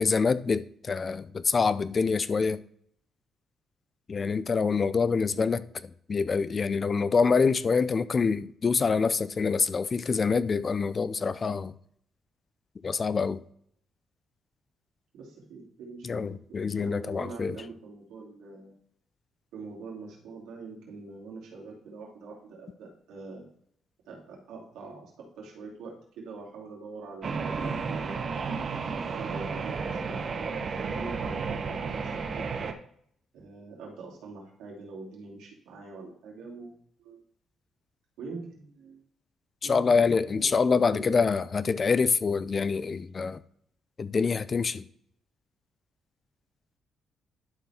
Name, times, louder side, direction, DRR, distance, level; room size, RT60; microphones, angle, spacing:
voice 1, 0.0-2.6 4.1-5.6 6.1-11.7 12.8-13.4 16.0-17.6 39.6-43.4 44.0-44.8, left 5 dB, 40° left, 0.4 m, -26 dB
voice 2, 15.1-18.7 19.5-23.5 24.1-28.3 29.1-32.5 33.3-37.2 38.2-39.0 39.6-41.3, right 3 dB, 90° right, 2.8 m, -44 dB
sound 1, 27.2-32.7, right 5 dB, 50° right, 0.9 m, -32 dB
11.5 x 4.5 x 4.3 m
cardioid pair, 90°, 0 cm